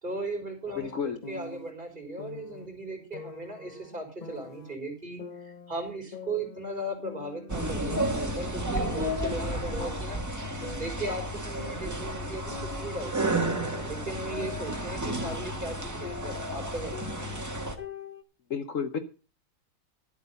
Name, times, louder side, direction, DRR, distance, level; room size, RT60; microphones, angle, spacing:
voice 1, 0.0-10.2 10.8-13.1 13.6-16.9, right 2 dB, 30° right, 2 dB, 4.1 m, -37 dB
sound 1, 0.7-1.7 2.2-2.7 3.1-4.7 5.2-6.8 7.0-8.5 8.8-9.3 9.7-12.1 12.5-16.6 16.9-18.2, left 5 dB, 40° left, 0.6 m, -44 dB
voice 2, 0.8-1.2 18.5-19.0, left 6 dB, 60° left, 8 dB, 1.2 m, -31 dB
sound 2, 7.5-17.8, right 1 dB, 10° right, 1.4 m, -32 dB
11.5 x 8.1 x 5.5 m, 0.34 s
omnidirectional pair, 1.6 m